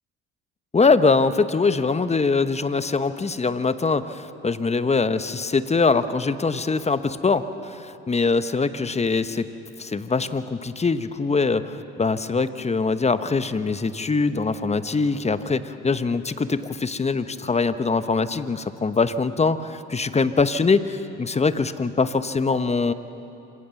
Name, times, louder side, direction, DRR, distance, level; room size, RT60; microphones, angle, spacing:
voice 1, 0.7-9.4 9.8-22.9, left 4 dB, 20° left, 12 dB, 1.0 m, -23 dB
26.5 x 17.0 x 7.1 m, 2.8 s
hypercardioid pair, 70°, 32 cm